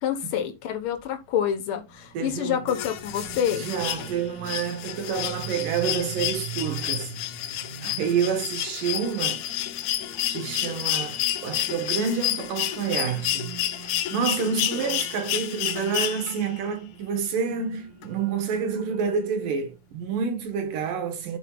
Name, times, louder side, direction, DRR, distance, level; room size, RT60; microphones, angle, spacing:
voice 1, 0.0-3.7, left 9 dB, 60° left, 1.5 m, -27 dB
sound 1, 1.3-19.7, right 6 dB, 70° right, 3.9 m, -44 dB
voice 2, 2.1-2.6 3.5-7.1 7.4-9.4 10.3-21.4, right 6 dB, 90° right, 3.0 m, -28 dB
sound 2, 2.7-16.6 18.0-18.1, left 13 dB, 75° left, 1.8 m, -30 dB
14.0 x 4.9 x 2.3 m
omnidirectional pair, 3.7 m